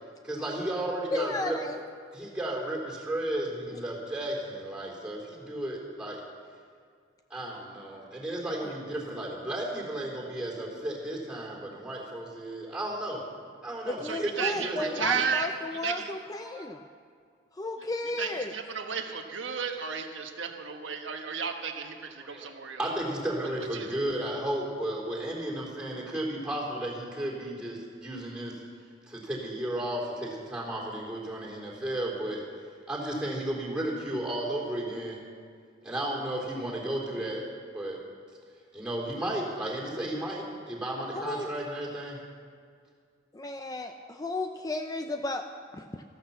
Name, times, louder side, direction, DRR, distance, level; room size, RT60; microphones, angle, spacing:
voice 1, 0.2-1.6 2.1-6.2 7.3-13.2 13.6-15.0 16.4-16.6 22.2-22.5 22.8-28.6 29.1-32.4 32.9-35.2 35.8-37.5 37.7-38.0 38.7-42.2, right 1 dB, 5° right, -2 dB, 3.7 m, -33 dB
voice 2, 1.1-1.8 8.6-8.7 13.8-16.8 17.5-18.5 41.1-41.5 43.3-46.0, left 2 dB, 20° left, 6 dB, 0.5 m, -34 dB
voice 3, 14.0-15.5 15.8-16.1 17.8-17.9 18.2-22.9 23.7-24.0, right 6 dB, 80° right, 4 dB, 1.3 m, -33 dB
14.5 x 12.0 x 7.1 m, 2.1 s
head